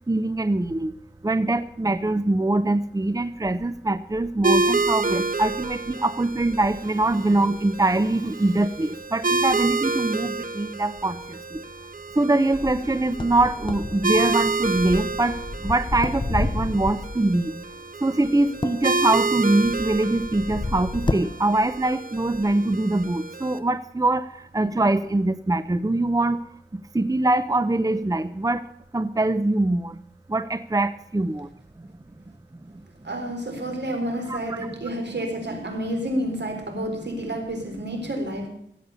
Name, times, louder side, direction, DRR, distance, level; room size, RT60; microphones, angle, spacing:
voice 1, 0.1-1.0 1.2-11.6 12.2-17.5 18.0-26.4 26.9-28.6 28.9-30.0 30.3-31.5 34.3-34.7, right 2 dB, 20° right, 13 dB, 0.6 m, -23 dB
sound 1, 4.4-23.6, right 3 dB, 45° right, 1.0 m, -29 dB
sound 2, 12.5-17.3 18.5-21.9 22.2-22.5 23.0-23.1, left 2 dB, 25° left, 0.6 m, -31 dB
voice 2, 33.0-38.5, right 1 dB, 65° right, 4 dB, 4.0 m, -29 dB
16.5 x 8.5 x 6.9 m, 0.71 s
wide cardioid pair, 65°, 19 cm